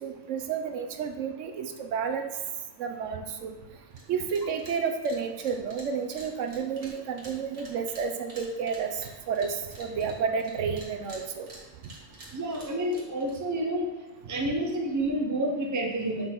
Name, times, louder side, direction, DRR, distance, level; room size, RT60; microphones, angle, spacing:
voice 1, 0.0-2.3 2.8-3.6 4.1-11.5, right 6 dB, 75° right, 6 dB, 0.9 m, -31 dB
sound 1, 3.9-4.0 4.3-4.8 5.0-10.5 10.8-13.3, right 2 dB, 55° right, 1.6 m, -48 dB
voice 2, 12.3-13.9 14.3-16.3, right 1 dB, 20° right, 1 dB, 0.6 m, -29 dB
5.2 x 4.1 x 5.9 m, 1.1 s
omnidirectional pair, 1.3 m